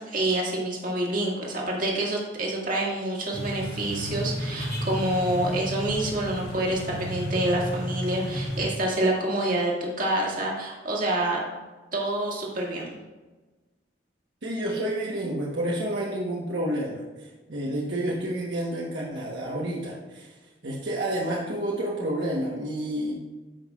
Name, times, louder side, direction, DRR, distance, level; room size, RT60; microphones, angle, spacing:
voice 1, 0.0-11.4 11.9-12.9, right 1 dB, 45° right, -3 dB, 1.9 m, -27 dB
sound 1, 3.3-8.7, equal, 55° left, 2.3 m, -32 dB
voice 2, 14.4-20.3 20.6-23.1, right 1 dB, 70° right, -4 dB, 1.1 m, -29 dB
14.0 x 5.5 x 2.4 m, 1.2 s
head